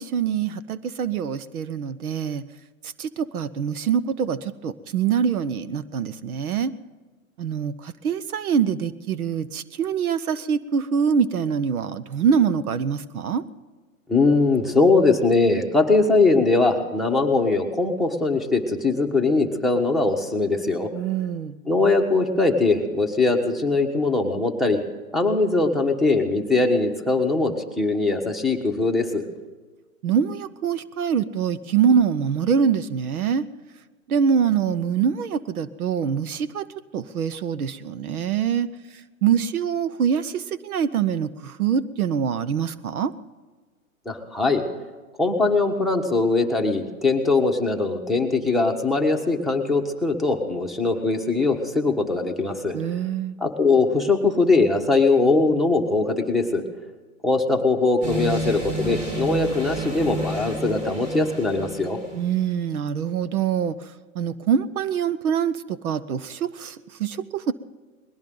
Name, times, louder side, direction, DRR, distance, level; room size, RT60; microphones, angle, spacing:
voice 1, 0.0-2.4 3.0-6.7 7.4-13.4 20.9-21.5 30.0-33.4 34.1-36.7 36.9-38.7 39.2-43.1 52.7-53.4 62.1-63.7 64.1-67.5, right 7 dB, 85° right, 15 dB, 1.0 m, -24 dB
voice 2, 14.1-20.9 21.7-24.8 25.1-29.2 44.0-44.6 45.2-52.8 53.4-56.6 57.2-62.0, left 3 dB, ahead, 6 dB, 1.4 m, -21 dB
sound 1, 58.0-62.4, equal, 35° right, 6.3 m, -31 dB
21.0 x 17.5 x 3.9 m, 1.3 s
hypercardioid pair, 140°, 42 cm